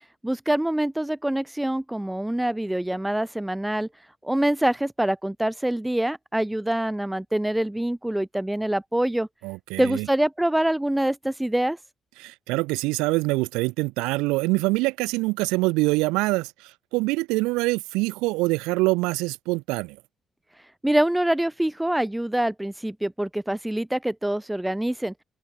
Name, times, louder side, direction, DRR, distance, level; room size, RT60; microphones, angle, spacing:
voice 1, 0.2-3.9 4.2-9.3 9.8-11.8 20.8-25.1, right 1 dB, 10° right, 1.8 m, -25 dB
voice 2, 9.4-10.1 12.2-20.0, right 23 dB, 80° right, 0.9 m, -25 dB
open air
hypercardioid pair, 50°, 0 cm